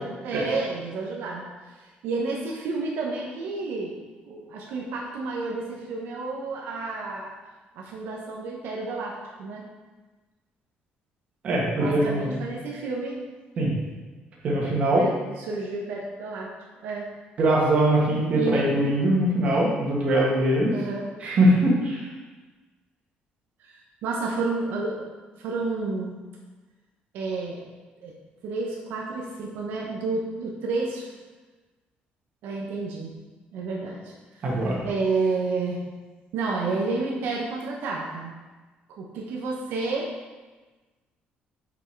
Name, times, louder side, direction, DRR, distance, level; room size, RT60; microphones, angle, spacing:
voice 1, 0.0-1.5 1.7-4.0 4.2-7.3 7.7-9.7 11.8-13.2 14.9-16.5 16.8-17.1 18.3-18.7 20.7-21.1 23.6-25.1 25.4-26.2 27.1-27.6 28.0-28.1 28.4-31.1 32.4-33.1 33.5-34.4 34.8-35.8 36.3-38.3 39.0-40.1, right 3 dB, 80° right, -2 dB, 1.0 m, -30 dB
voice 2, 11.4-12.3 13.6-13.7 14.4-15.0 17.4-20.7 21.2-22.1 34.4-34.9, right 1 dB, 40° right, -4 dB, 1.8 m, -22 dB
6.2 x 5.4 x 4.6 m, 1.3 s
cardioid pair, 170°, 3 cm